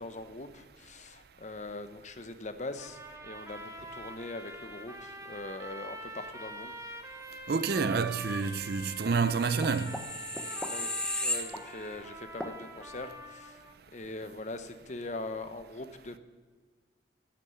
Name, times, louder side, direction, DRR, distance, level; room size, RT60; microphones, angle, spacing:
voice 1, 0.0-6.7 10.7-10.9 11.2-13.6 13.9-16.2, left 2 dB, 40° left, 0.9 m, -42 dB
sound 1, 2.8-13.8, right 1 dB, 15° right, 1.2 m, -45 dB
voice 2, 7.5-10.0, right 5 dB, 60° right, 0.5 m, -28 dB
sound 2, 9.1-12.0 12.4-12.6, left 1 dB, 5° left, 0.8 m, -35 dB
11.0 x 8.4 x 7.9 m
head